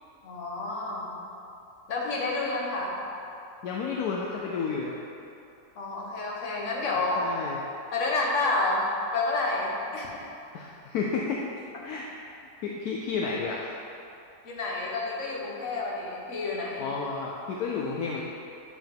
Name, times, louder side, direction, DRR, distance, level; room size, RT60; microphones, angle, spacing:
voice 1, 0.2-1.2 1.9-3.0 5.8-7.2 7.9-8.8 9.1-10.3 14.4-16.9, left 3 dB, 50° left, -3 dB, 1.2 m, -29 dB
voice 2, 3.6-5.0 7.2-7.6 10.5-11.4 11.8-12.1 12.6-13.8 16.8-18.2, left 5 dB, 70° left, -2 dB, 1.0 m, -31 dB
7.8 x 4.8 x 3.5 m, 2.7 s
omnidirectional pair, 1.9 m